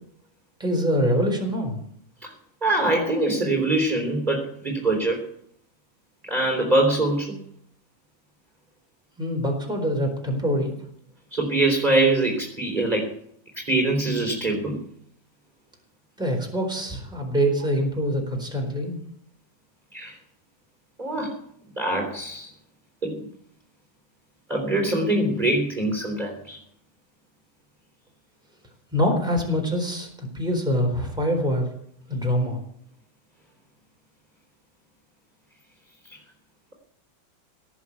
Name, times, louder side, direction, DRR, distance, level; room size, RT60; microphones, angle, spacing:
voice 1, 0.6-1.8 9.2-10.8 16.2-19.0 28.9-31.7 32.1-32.6, equal, ahead, 1 dB, 4.0 m, -24 dB
voice 2, 2.6-5.2 6.3-7.4 11.3-13.1 13.6-14.8 19.9-20.2 21.0-21.4 21.8-22.5 23.0-23.3 24.5-26.6, right 2 dB, 25° right, 1 dB, 3.6 m, -23 dB
18.0 x 7.2 x 8.4 m, 0.65 s
omnidirectional pair, 2.1 m